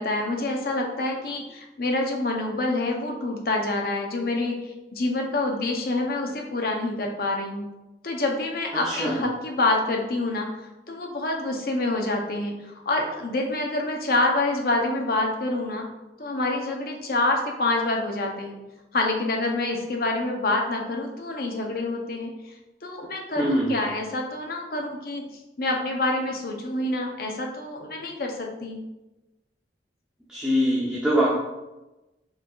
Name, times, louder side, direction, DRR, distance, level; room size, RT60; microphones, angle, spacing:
voice 1, 0.0-7.7 8.0-15.9 16.2-18.6 18.9-22.5 22.8-25.2 25.6-28.8, left 2 dB, 55° left, 1 dB, 0.7 m, -27 dB
voice 2, 8.8-9.2 23.4-23.8 30.3-31.3, equal, 5° right, -7 dB, 0.7 m, -23 dB
4.8 x 4.5 x 2.4 m, 1.0 s
head